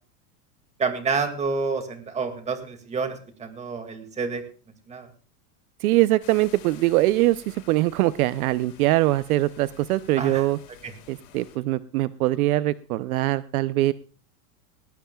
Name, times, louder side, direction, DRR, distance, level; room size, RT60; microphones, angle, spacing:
voice 1, 0.8-4.4 4.9-5.1 10.2-10.5 10.8-10.9, right 4 dB, 15° right, 7 dB, 2.1 m, -28 dB
voice 2, 5.8-10.6 11.1-13.9, right 17 dB, 60° right, 15 dB, 0.7 m, -22 dB
sound 1, 6.2-11.6, left 8 dB, 60° left, 6.9 m, -50 dB
19.0 x 19.0 x 2.3 m, 0.39 s
supercardioid pair, 160°, 48 cm